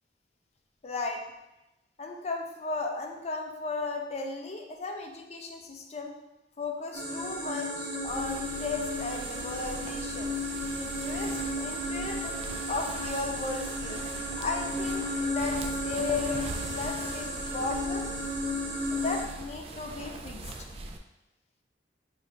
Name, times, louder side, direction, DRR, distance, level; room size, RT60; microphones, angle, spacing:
voice 1, 0.8-1.2 2.0-6.1 6.6-10.3 10.7-12.3 12.7-14.1 14.4-18.2 18.9-20.8, left 3 dB, 35° left, 3 dB, 0.5 m, -35 dB
sound 1, 6.9-19.2, left 1 dB, 75° right, 1.1 m, -33 dB
sound 2, 8.1-21.0, right 2 dB, 35° right, 0.3 m, -42 dB
5.0 x 2.4 x 3.2 m, 0.97 s
head